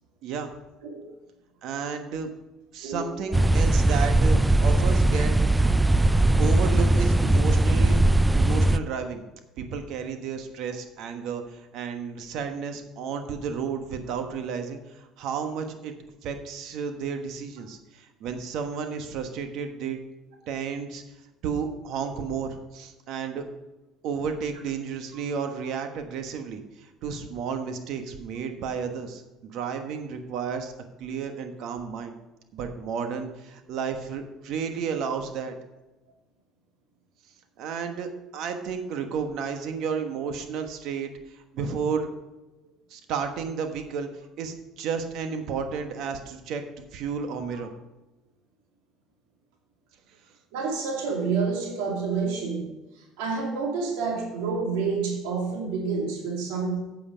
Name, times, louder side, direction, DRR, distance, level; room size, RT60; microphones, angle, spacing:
voice 1, 1.6-2.3 2.7-5.3 6.4-8.1 8.3-9.2 9.6-15.9 16.2-20.0 20.5-21.0 21.4-23.4 24.0-30.7 31.0-32.2 32.5-35.5 37.6-42.1 42.9-44.1 44.4-46.6 46.9-47.7, right 6 dB, 65° right, 6 dB, 1.3 m, -32 dB
sound 1, 3.3-8.8, right 1 dB, 10° right, 0.3 m, -20 dB
voice 2, 50.5-52.7 53.2-56.8, right 5 dB, 90° right, 0 dB, 2.4 m, -28 dB
9.0 x 7.8 x 5.1 m, 1.0 s
supercardioid pair, 105°, 0 cm